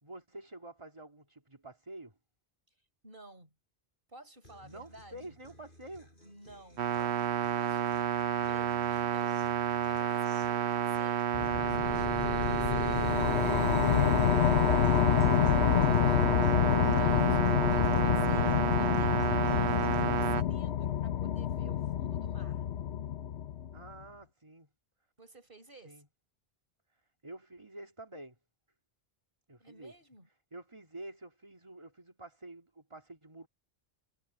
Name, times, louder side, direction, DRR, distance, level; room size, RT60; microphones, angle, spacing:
voice 1, 0.0-2.2 4.6-6.1 23.7-24.7 25.8-26.1 27.2-28.4 29.5-29.9 30.5-33.5, right 1 dB, 25° right, 2.4 m, -48 dB
voice 2, 3.0-3.5 4.1-5.4 6.2-7.0 7.6-16.2 16.8-22.7 25.2-26.0 29.6-30.3, right 2 dB, 55° right, 5.2 m, -55 dB
Guitar, 4.4-20.4, left 1 dB, 50° left, 7.5 m, -57 dB
sound 1, 6.8-20.4, right 9 dB, 85° right, 1.0 m, -30 dB
sound 2, 11.3-23.9, left 10 dB, 85° left, 1.0 m, -28 dB
omnidirectional pair, 1.1 m